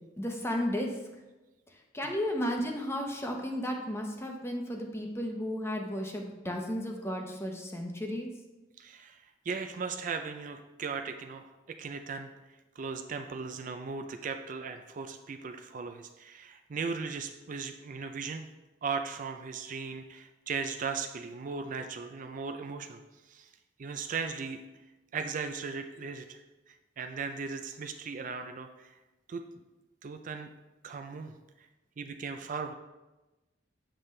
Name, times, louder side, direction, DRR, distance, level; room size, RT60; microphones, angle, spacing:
voice 1, 0.2-0.9 1.9-8.3, equal, 15° left, 2 dB, 0.8 m, -33 dB
voice 2, 8.8-12.3 12.8-18.4 18.8-23.0 23.3-23.5 23.8-24.6 25.1-26.4 26.7-28.9 29.3-29.6 30.0-30.5 30.8-31.4 32.0-32.7, right 5 dB, 45° right, 7 dB, 0.4 m, -37 dB
7.5 x 6.7 x 3.2 m, 1.1 s
head